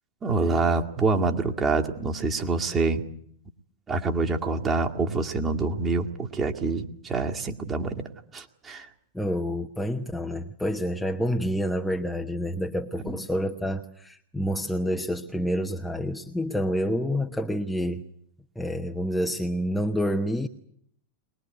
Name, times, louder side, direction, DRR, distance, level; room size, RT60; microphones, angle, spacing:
voice 1, 0.2-3.0 3.9-8.0 8.3-8.9, right 3 dB, 20° right, 2.0 m, -26 dB
voice 2, 9.1-18.0 18.6-20.5, equal, 5° left, 1.1 m, -28 dB
22.5 x 21.0 x 9.3 m
figure-of-eight pair, 90°, 0 cm